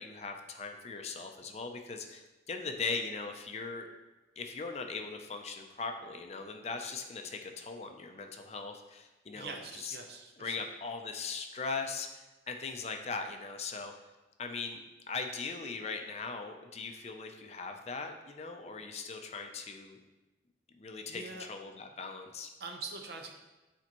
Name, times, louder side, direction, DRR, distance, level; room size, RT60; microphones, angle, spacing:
voice 1, 0.0-3.9 4.4-10.0 10.4-13.9 14.4-20.0 20.8-22.5, left 4 dB, 35° left, 4 dB, 0.4 m, -40 dB
voice 2, 9.3-10.7 21.1-21.5 22.6-23.4, right 3 dB, 60° right, 3 dB, 0.7 m, -44 dB
8.3 x 4.4 x 3.0 m, 1.1 s
head